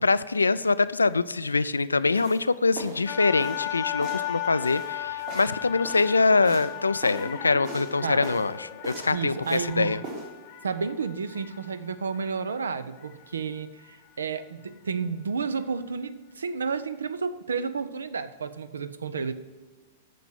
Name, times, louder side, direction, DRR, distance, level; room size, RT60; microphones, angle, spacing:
voice 1, 0.0-10.0, left 3 dB, 80° left, 16 dB, 0.3 m, -24 dB
sound 1, 2.1-2.4 2.8-3.1 3.4-3.7 4.0-4.3 4.6-6.1 6.4-6.7 7.0-7.3 7.6-7.9 8.2-8.5 8.8-9.7 10.0-10.3, right 2 dB, 50° right, 3.5 m, -40 dB
sound 2, 3.1-13.3 13.8-14.0, left 14 dB, 40° left, 0.7 m, -36 dB
sound 3, 5.0-10.0, left 2 dB, 25° left, 1.0 m, -47 dB
voice 2, 9.1-10.0 10.6-19.3, right 5 dB, 70° right, 13 dB, 0.6 m, -31 dB
9.3 x 6.8 x 6.1 m, 1.4 s
figure-of-eight pair, 100°, 0 cm